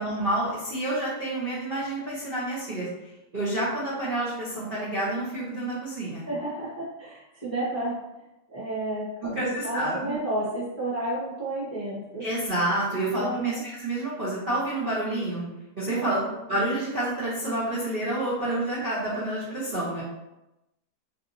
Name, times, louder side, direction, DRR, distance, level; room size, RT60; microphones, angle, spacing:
voice 1, 0.0-6.3 9.2-10.2 12.2-15.4 15.8-16.2 16.5-20.0, right 1 dB, 45° right, -10 dB, 0.7 m, -29 dB
voice 2, 6.3-8.0 8.5-12.3 13.2-13.6 15.9-16.5, right 2 dB, 15° left, -9 dB, 0.6 m, -31 dB
3.3 x 2.7 x 2.6 m, 0.94 s
omnidirectional pair, 1.9 m